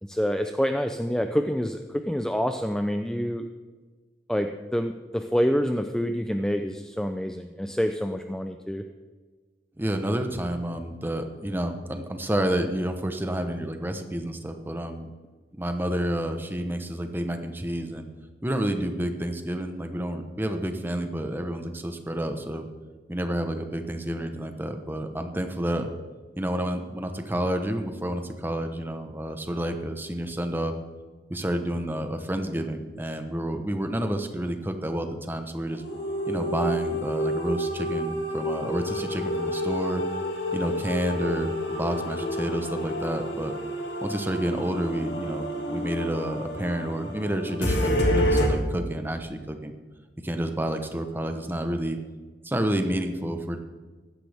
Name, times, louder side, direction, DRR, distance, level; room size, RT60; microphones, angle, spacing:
voice 1, 0.0-3.5 4.3-8.8, equal, 5° left, 6 dB, 0.4 m, -27 dB
voice 2, 9.8-15.1 15.6-18.1 18.4-22.7 23.1-25.9 26.4-30.7 31.3-35.8 36.3-40.0 40.5-43.5 44.0-49.7 50.2-52.0 52.4-53.6, right 1 dB, 10° right, 6 dB, 0.9 m, -29 dB
sound 1, 35.7-48.5, equal, 80° left, 2.2 m, -29 dB
15.5 x 12.0 x 3.5 m, 1.4 s
head